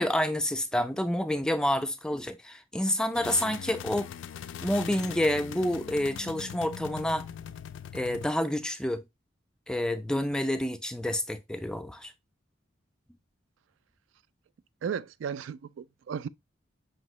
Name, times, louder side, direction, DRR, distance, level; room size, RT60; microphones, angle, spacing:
voice 1, 0.0-4.1 4.6-7.3 7.9-9.0 9.7-12.1, left 1 dB, 5° left, 0.4 m, -28 dB
sound 1, 3.1-8.3, left 8 dB, 75° left, 0.3 m, -41 dB
voice 2, 14.8-16.3, right 7 dB, 90° right, 0.3 m, -35 dB
5.7 x 2.7 x 2.9 m
head